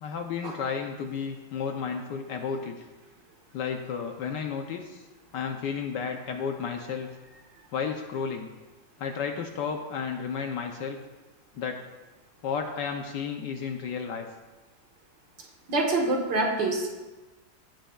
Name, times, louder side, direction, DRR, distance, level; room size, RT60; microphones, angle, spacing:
voice 1, 0.0-2.9 3.5-5.0 5.3-7.1 7.7-8.5 9.0-11.0 11.5-11.8 12.4-14.3, left 6 dB, 70° left, 4 dB, 1.2 m, -32 dB
voice 2, 15.7-16.9, right 2 dB, 65° right, 0 dB, 2.0 m, -26 dB
14.0 x 9.2 x 2.4 m, 1.2 s
omnidirectional pair, 2.1 m